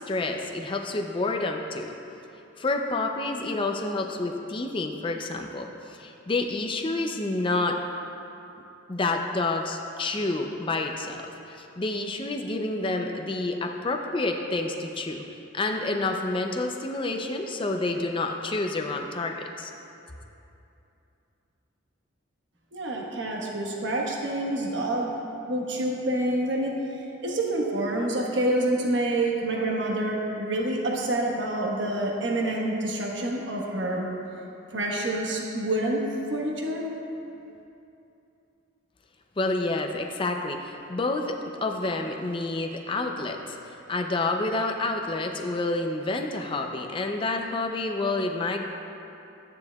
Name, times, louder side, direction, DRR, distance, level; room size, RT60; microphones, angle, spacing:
voice 1, 0.0-1.9 2.6-7.8 8.9-15.3 15.5-19.7 39.4-48.6, left 2 dB, 25° left, 3 dB, 0.5 m, -29 dB
voice 2, 22.7-25.1 25.5-26.8 27.2-34.1 34.7-36.0 36.3-36.8, right 1 dB, 60° right, -1 dB, 1.3 m, -27 dB
13.5 x 9.7 x 2.3 m, 2.8 s
head